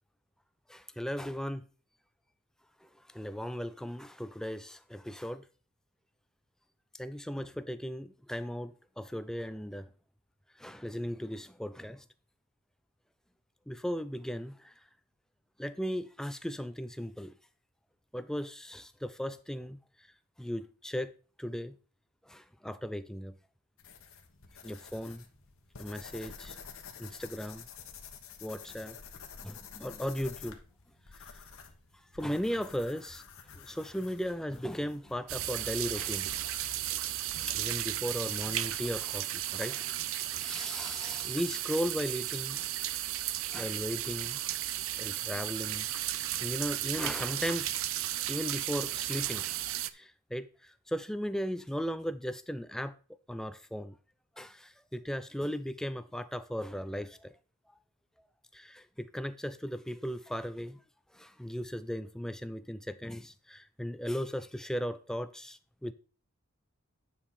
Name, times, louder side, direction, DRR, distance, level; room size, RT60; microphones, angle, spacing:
voice 1, 0.7-1.7 3.1-5.4 6.9-9.9 10.6-12.0 13.7-14.7 15.6-17.3 18.1-19.8 20.4-21.1 21.4-21.8 22.3-23.3 24.6-25.2 25.8-26.6 27.0-27.6 28.4-29.0 29.4-30.6 31.2-31.3 32.1-33.2 33.5-36.3 37.5-42.7 43.5-44.4 45.0-45.9 46.4-47.7 48.3-49.6 49.9-52.9 53.3-53.9 54.4-57.3 58.5-60.8 61.1-65.9, equal, 5° left, 0.3 m, -37 dB
sound 1, 23.8-39.0, left 6 dB, 85° left, 1.2 m, -51 dB
sound 2, 35.3-49.9, right 13 dB, 75° right, 0.5 m, -34 dB
9.8 x 5.4 x 4.2 m
head